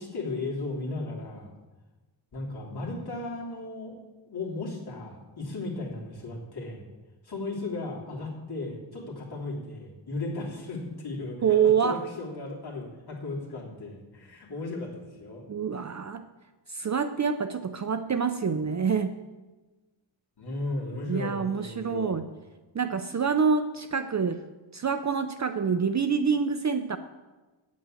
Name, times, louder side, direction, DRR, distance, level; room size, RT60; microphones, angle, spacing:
voice 1, 0.0-1.5 2.3-4.0 4.3-6.8 7.2-15.4 20.4-22.2, left 2 dB, 50° left, -3 dB, 3.1 m, -36 dB
voice 2, 11.4-12.0 15.5-16.2 16.7-19.1 21.1-22.3 22.7-24.4 24.7-27.0, right 6 dB, 40° right, 9 dB, 0.5 m, -26 dB
9.4 x 8.4 x 7.7 m, 1.2 s
wide cardioid pair, 175°, 47 cm